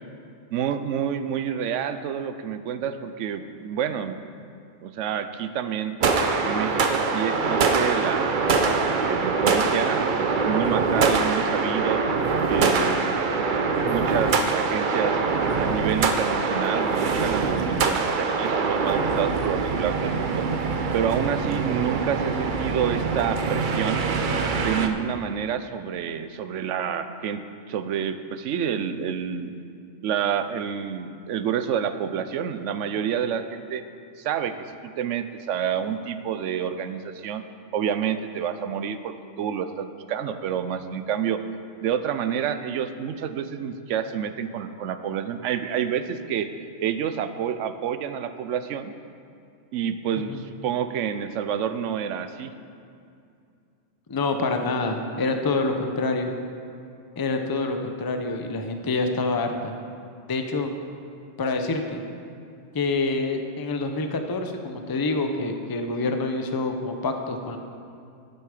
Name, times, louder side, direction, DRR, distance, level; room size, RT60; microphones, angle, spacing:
voice 1, 0.5-4.5 4.8-5.9 6.4-12.0 12.5-13.0 13.8-15.2 15.6-20.5 20.9-24.0 24.5-29.5 30.0-33.8 34.2-34.5 34.8-37.4 37.7-41.4 41.8-46.5 46.8-48.9 49.7-52.5, right 8 dB, 80° right, 10 dB, 0.9 m, -28 dB
sound 1, 6.0-24.9, right 4 dB, 50° right, 0.7 m, -24 dB
voice 2, 54.1-56.3 57.2-59.7 60.3-60.7 61.4-62.0 62.7-67.6, left 3 dB, 25° left, 5 dB, 0.5 m, -26 dB
11.0 x 8.2 x 4.9 m, 2.5 s
omnidirectional pair, 1.3 m